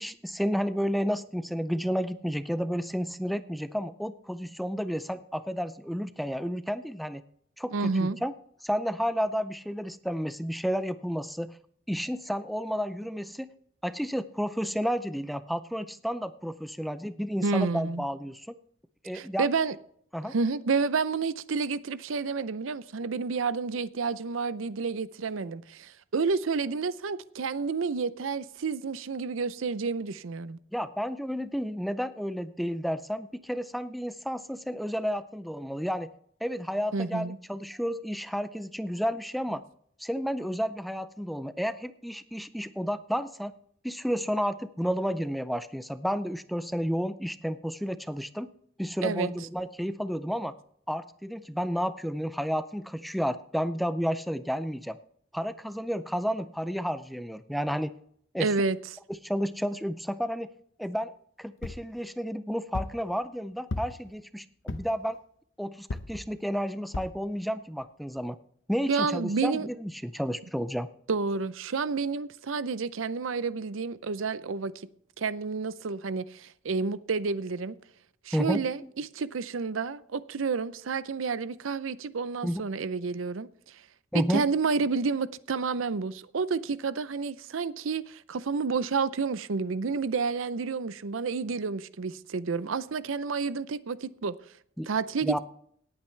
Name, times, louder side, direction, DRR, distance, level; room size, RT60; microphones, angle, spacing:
voice 1, 0.0-7.2 7.6-8.3 8.6-11.6 11.9-13.5 13.8-18.6 19.0-19.5 20.1-20.3 30.7-36.1 36.4-39.6 40.0-43.5 43.8-48.5 48.8-50.5 50.9-55.0 55.3-57.9 58.3-58.5 59.1-60.5 60.8-65.2 65.6-68.4 68.7-70.9 78.3-78.9 82.4-82.6 84.1-84.5 94.8-94.9 95.2-95.4, equal, ahead, 0.4 m, -31 dB
voice 2, 7.7-8.2 17.4-18.1 19.1-19.7 20.2-30.6 36.9-37.4 49.0-49.3 58.4-58.8 68.9-69.7 71.1-74.7 75.2-77.8 78.3-83.5 84.1-94.3 94.9-95.4, right 4 dB, 80° right, 0.6 m, -30 dB
sound 1, 61.6-61.9 62.7-63.0 63.7-64.1 64.7-65.0 65.9-66.2 66.9-67.2 67.8-67.9 68.2-68.3, left 2 dB, 70° left, 0.9 m, -35 dB
18.0 x 8.8 x 3.3 m
head